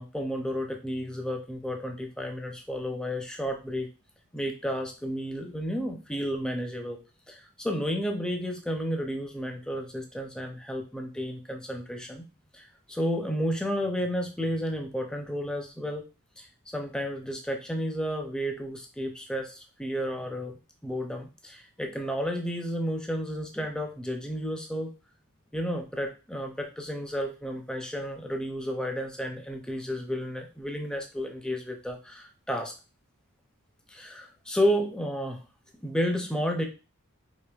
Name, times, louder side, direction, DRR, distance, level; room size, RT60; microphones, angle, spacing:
voice 1, 0.0-3.9 4.3-7.0 7.3-12.3 12.5-16.1 16.4-24.9 25.5-32.7 33.9-35.4 35.8-36.6, equal, 5° left, 3 dB, 0.4 m, -32 dB
4.9 x 2.8 x 2.3 m, 0.32 s
head